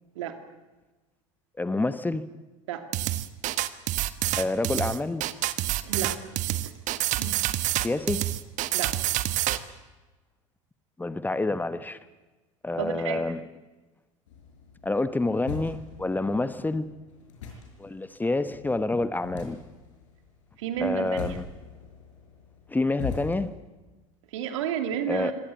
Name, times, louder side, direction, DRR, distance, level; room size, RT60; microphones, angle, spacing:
voice 1, 1.6-2.2 4.4-5.2 7.8-8.2 11.0-12.0 12.6-13.4 14.8-16.9 17.8-19.6 20.8-21.4 22.7-23.5 25.1-25.3, left 2 dB, 10° left, 13 dB, 1.1 m, -28 dB
sound 1, 2.9-9.6, right 15 dB, 50° right, 1.3 m, -27 dB
voice 2, 5.8-6.2 6.5-6.7 7.1-7.3 8.7-9.0 12.8-13.3 20.6-21.4 24.3-25.3, right 9 dB, 70° right, 8 dB, 2.6 m, -31 dB
sound 2, 14.3-23.4, left 6 dB, 70° left, 5.9 m, -42 dB
24.5 x 17.5 x 8.4 m, 1.2 s
figure-of-eight pair, 75°, 17 cm